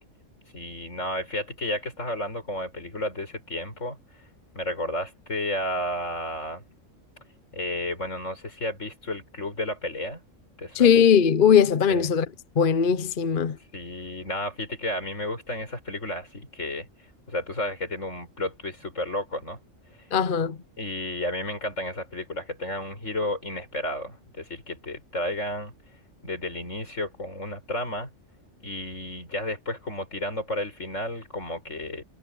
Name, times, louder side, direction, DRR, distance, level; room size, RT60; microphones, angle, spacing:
voice 1, 0.5-4.0 4.6-6.6 7.5-10.2 10.6-11.0 11.9-12.1 13.7-16.9 17.3-19.6 20.8-25.7 26.2-28.1 28.6-32.0, left 1 dB, 75° left, 7.2 m, -32 dB
voice 2, 10.7-12.3 12.6-13.6 20.1-20.6, left 7 dB, 50° left, 0.9 m, -19 dB
omnidirectional pair, 1.3 m